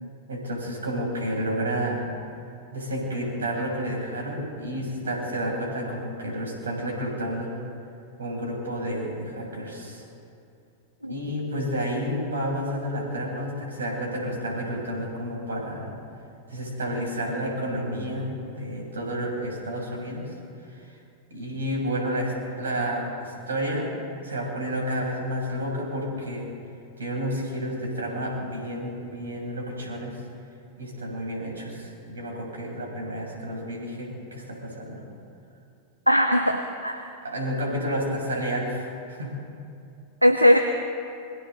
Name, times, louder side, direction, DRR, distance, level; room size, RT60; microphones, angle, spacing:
voice 1, 0.3-2.1 2.7-7.5 8.2-10.0 11.1-15.9 16.5-20.3 20.7-20.9 21.3-23.9 24.2-26.5 27.0-30.1 30.8-35.0 37.2-39.3, equal, 70° right, -1 dB, 7.2 m, -30 dB
voice 2, 36.1-37.0 40.2-40.6, equal, 90° right, 6 dB, 0.9 m, -19 dB
27.5 x 24.0 x 4.0 m, 2.5 s
figure-of-eight pair, 90°, 0 cm